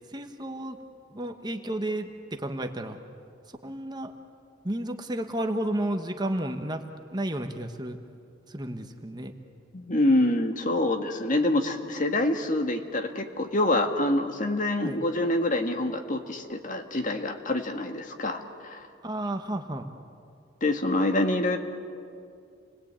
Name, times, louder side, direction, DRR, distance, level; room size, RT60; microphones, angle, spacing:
voice 1, 0.1-0.8 1.1-3.0 3.6-4.1 4.6-6.8 7.1-8.0 8.5-9.3 14.8-15.0 19.0-19.9, right 1 dB, 20° right, 5 dB, 1.3 m, -32 dB
voice 2, 9.7-18.8 20.6-21.6, left 1 dB, 40° left, 5 dB, 1.8 m, -26 dB
29.0 x 21.0 x 8.9 m, 2.4 s
head